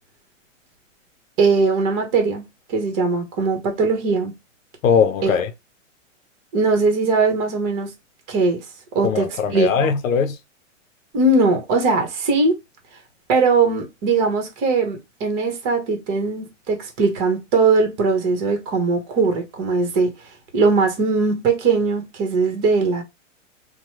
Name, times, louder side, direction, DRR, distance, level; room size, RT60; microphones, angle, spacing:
voice 1, 1.4-2.4 2.7-4.3 5.2-5.3 6.5-7.9 8.3-8.6 8.9-9.7 11.1-12.5 13.3-20.1 20.5-23.0, right 4 dB, 35° right, 1.0 m, -20 dB
voice 2, 4.8-5.5 9.0-10.4, left 6 dB, 90° left, 0.6 m, -20 dB
2.9 x 2.2 x 3.0 m
hypercardioid pair, 140°, 39 cm